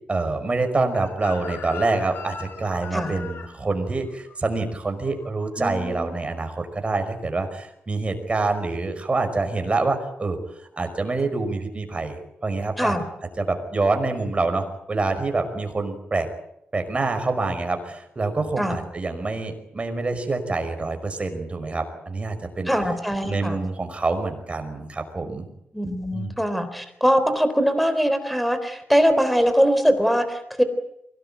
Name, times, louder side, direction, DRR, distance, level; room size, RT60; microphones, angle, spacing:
voice 1, 0.1-12.9 13.4-16.3 16.7-22.7 23.2-25.5 26.1-26.3, right 3 dB, 30° right, 6 dB, 5.5 m, -26 dB
Chicken rooster, 0.9-5.9 6.2-6.5, left 5 dB, 75° left, 4.7 m, -40 dB
voice 2, 5.6-6.1 12.8-13.1 18.6-18.9 22.7-23.6 25.7-30.6, equal, ahead, 10 dB, 3.8 m, -22 dB
23.5 x 19.0 x 9.2 m, 0.80 s
cardioid pair, 95°, 4 cm